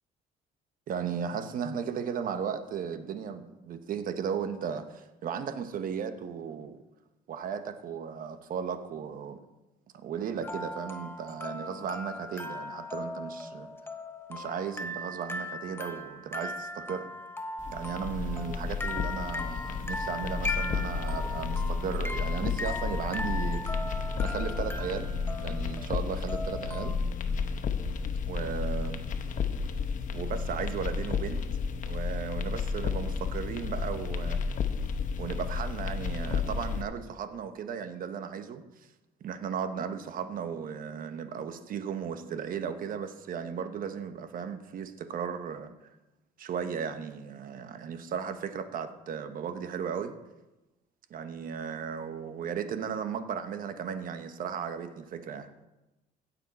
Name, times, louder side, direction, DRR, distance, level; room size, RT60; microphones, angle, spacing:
voice 1, 0.9-6.8 7.3-9.4 9.9-13.7 14.3-17.1 17.7-23.7 24.2-25.1 25.4-26.9 28.3-29.0 30.1-31.4 31.9-34.4 35.2-38.6 39.2-45.7 46.4-50.1 51.1-55.5, right 7 dB, 55° right, 9 dB, 1.1 m, -35 dB
sound 1, 10.4-27.0, left 2 dB, 15° left, 0.9 m, -38 dB
sound 2, 17.6-36.8, left 5 dB, 50° left, 1.0 m, -32 dB
16.0 x 7.3 x 4.2 m, 1.0 s
cardioid pair, 110°, 17 cm